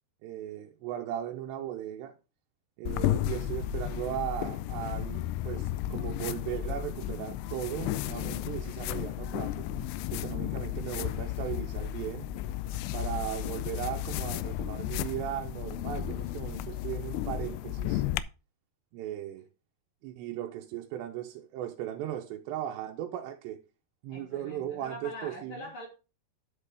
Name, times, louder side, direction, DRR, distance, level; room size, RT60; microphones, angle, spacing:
voice 1, 0.2-2.1 2.8-9.7 10.1-12.3 12.9-18.0 18.9-19.5 20.0-23.6 24.0-25.6, right 11 dB, 85° right, 2.9 m, -37 dB
sound 1, 2.9-18.2, left 12 dB, 90° left, 2.8 m, -33 dB
voice 2, 24.1-25.9, left 1 dB, 65° left, 1.2 m, -44 dB
10.5 x 6.7 x 3.4 m
omnidirectional pair, 4.9 m